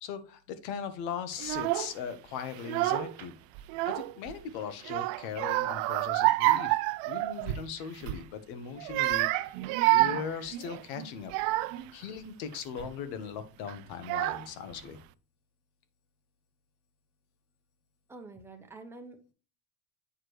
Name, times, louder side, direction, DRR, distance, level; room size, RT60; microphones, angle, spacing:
voice 1, 0.0-3.3 3.8-6.8 7.0-9.6 9.9-11.3 11.9-15.0, left 7 dB, 90° left, 10 dB, 1.4 m, -39 dB
Child speech kid speaking / Crying sobbing, 1.4-1.9 2.6-3.2 3.5-4.4 4.8-7.7 8.0-8.3 8.8-11.9 12.5-12.9 13.7-13.8 14.0-14.7, right 17 dB, 65° right, 0.6 m, -28 dB
voice 2, 18.1-19.3, right 3 dB, 5° right, 3 dB, 0.9 m, -47 dB
8.6 x 4.9 x 3.2 m, 0.35 s
cardioid pair, 160°, 49 cm